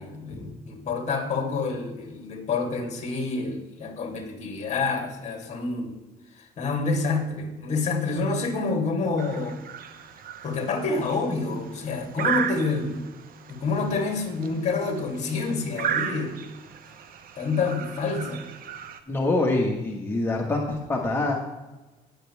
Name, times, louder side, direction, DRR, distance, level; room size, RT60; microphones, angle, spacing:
voice 1, 0.0-6.0 6.4-9.6 10.4-13.1 13.5-16.4 17.4-18.4, left 3 dB, 40° left, 3 dB, 3.2 m, -28 dB
sound 1, 9.2-19.0, right 8 dB, 60° right, 1.2 m, -35 dB
voice 2, 19.1-21.3, left 2 dB, 15° left, -1 dB, 1.8 m, -25 dB
20.5 x 7.9 x 3.6 m, 1.1 s
cardioid pair, 110°, 17 cm